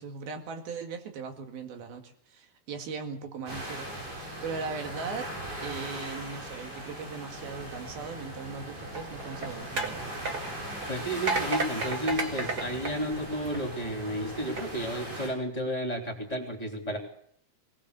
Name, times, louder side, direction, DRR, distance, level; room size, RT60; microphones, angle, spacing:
voice 1, 0.0-5.3 5.6-10.2, right 5 dB, 70° right, 5 dB, 3.9 m, -39 dB
sound 1, 3.5-15.3, right 1 dB, 90° right, 9.7 m, -39 dB
sound 2, 8.9-13.8 14.4-14.6, right 3 dB, 35° right, 1.8 m, -33 dB
voice 2, 10.9-17.0, equal, 10° left, 1 dB, 3.2 m, -32 dB
20.0 x 19.5 x 6.9 m, 0.65 s
omnidirectional pair, 4.5 m